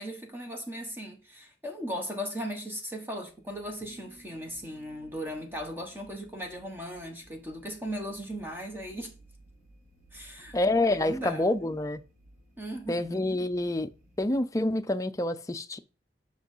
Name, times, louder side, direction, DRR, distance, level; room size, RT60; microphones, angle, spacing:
voice 1, 0.0-9.1 10.1-11.5 12.6-13.4, equal, 10° right, 1.4 m, -38 dB
sound 1, 3.3-14.4, right 1 dB, 50° right, 2.7 m, -58 dB
sound 2, 3.8-6.9, right 2 dB, 90° right, 2.3 m, -58 dB
voice 2, 10.5-12.0 12.9-13.9 14.2-15.8, left 2 dB, 20° left, 0.5 m, -27 dB
6.2 x 6.0 x 5.5 m
head